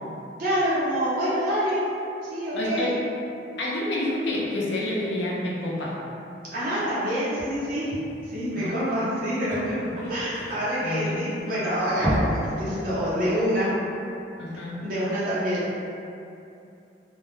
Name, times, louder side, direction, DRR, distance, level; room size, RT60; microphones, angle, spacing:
voice 1, 0.4-1.8 2.3-2.9 6.5-8.0 8.2-9.8 10.1-13.7 14.8-15.8, equal, 50° right, -10 dB, 0.8 m, -26 dB
voice 2, 2.5-3.0 3.6-6.0 8.5-8.8 9.8-10.1 10.8-11.4 14.4-14.8, left 1 dB, 80° left, -4 dB, 0.5 m, -29 dB
sound 1, 8.4-8.5 8.8-8.9 9.1-11.4 11.8-12.5 12.9-13.0 13.5-13.6, equal, 10° left, 0.8 m, -29 dB
2.3 x 2.1 x 3.1 m, 2.7 s
head